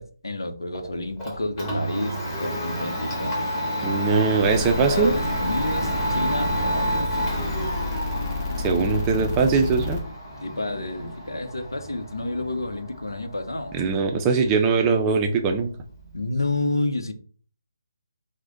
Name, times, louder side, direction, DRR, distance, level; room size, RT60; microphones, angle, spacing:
voice 1, 0.0-3.4 4.9-7.1 10.4-13.8 16.1-17.1, left 2 dB, 90° left, 0.7 m, -29 dB
Domestic sounds home sounds, 0.7-16.6, equal, 15° left, 1.5 m, -30 dB
voice 2, 3.8-5.1 8.6-10.0 13.7-15.7, right 5 dB, 15° right, 0.4 m, -21 dB
sound 1, 4.4-10.0, left 3 dB, 35° left, 0.9 m, -30 dB
4.7 x 2.1 x 3.8 m
figure-of-eight pair, 155°, 2 cm